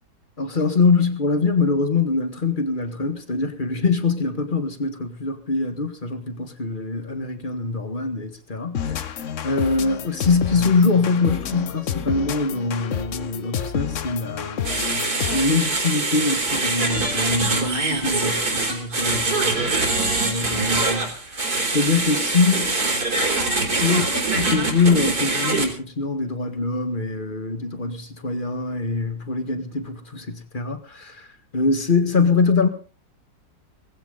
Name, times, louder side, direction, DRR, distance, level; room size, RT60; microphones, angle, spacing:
voice 1, 0.4-9.1 9.4-15.0 15.3-21.4 21.7-22.8 23.8-31.3 31.5-32.7, left 4 dB, 25° left, 1.8 m, -23 dB
sound 1, 8.7-15.6, left 8 dB, 50° left, 1.0 m, -29 dB
sound 2, 14.6-25.7, right 3 dB, 55° right, 4.4 m, -23 dB
19.0 x 15.5 x 4.0 m
omnidirectional pair, 2.0 m